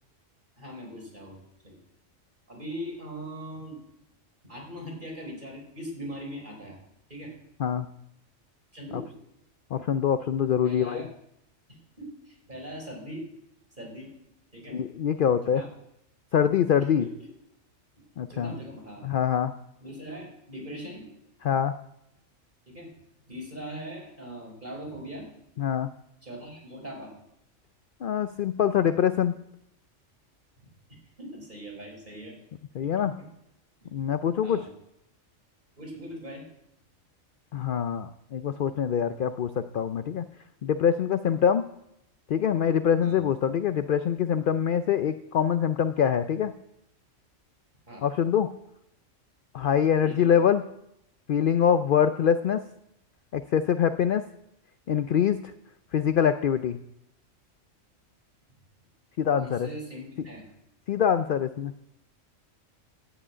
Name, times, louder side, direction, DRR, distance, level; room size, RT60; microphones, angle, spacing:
voice 1, 0.6-1.4 1.6-1.8 2.5-3.8 4.4-6.8 7.1-7.4 8.7-9.1 10.6-11.1 11.7-13.2 13.8-14.1 14.5-14.8 15.4-15.7 16.8-17.3 18.3-19.0 19.8-21.1 22.7-22.9 23.3-25.3 26.2-27.1 31.2-32.4 32.8-33.3 33.8-33.9 34.4-34.7 35.8-36.4 43.0-43.2 47.9-48.1 50.0-50.4 59.4-60.5, equal, 35° right, 0 dB, 4.7 m, -40 dB
voice 2, 9.7-11.0 14.7-15.6 16.3-17.0 18.2-18.5 19.0-19.5 21.4-21.7 25.6-25.9 28.0-29.3 32.8-33.1 33.9-34.6 37.5-40.2 40.6-41.6 42.3-46.5 48.0-48.5 49.5-50.6 51.3-52.6 53.3-54.2 54.9-55.4 55.9-56.8 59.2-59.7 60.9-61.7, left 8 dB, 60° left, 11 dB, 0.6 m, -24 dB
11.0 x 8.2 x 8.8 m, 0.80 s
omnidirectional pair, 1.4 m